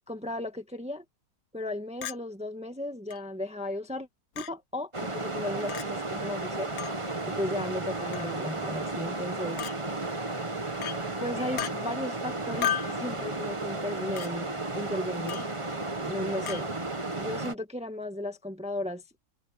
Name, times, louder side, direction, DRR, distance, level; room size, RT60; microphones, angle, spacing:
voice 1, 0.1-1.0 1.5-4.1 4.4-6.7 7.2-9.6 11.2-15.5 16.0-16.7 17.2-19.0, left 1 dB, 5° right, 1.7 m, -35 dB
Chink clink, 2.0-2.2 3.1-3.2 4.4-4.5 5.7-5.9 6.8-7.0 8.1-8.4 9.6-9.8 10.8-11.0 11.6-11.7 12.6-13.0 14.2-14.3 15.3-15.5 16.5-16.6, left 10 dB, 85° left, 1.5 m, -33 dB
sound 1, 4.9-17.5, right 2 dB, 20° right, 1.4 m, -33 dB
omnidirectional pair, 1.7 m